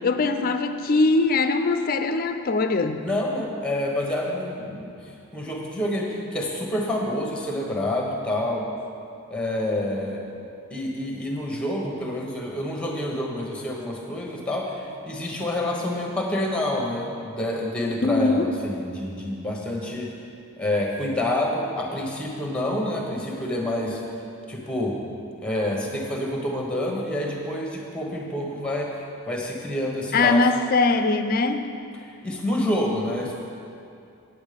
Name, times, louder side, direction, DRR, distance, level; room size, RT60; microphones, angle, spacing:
voice 1, 0.0-3.0 18.0-18.5 30.1-31.6, left 3 dB, 40° left, 8 dB, 0.5 m, -21 dB
voice 2, 3.0-8.7 9.3-10.2 10.7-20.1 20.6-24.0 24.5-25.0 25.4-28.9 29.3-30.4 32.0-33.4, left 1 dB, 5° left, -1 dB, 1.2 m, -28 dB
8.7 x 8.1 x 5.1 m, 2.7 s
head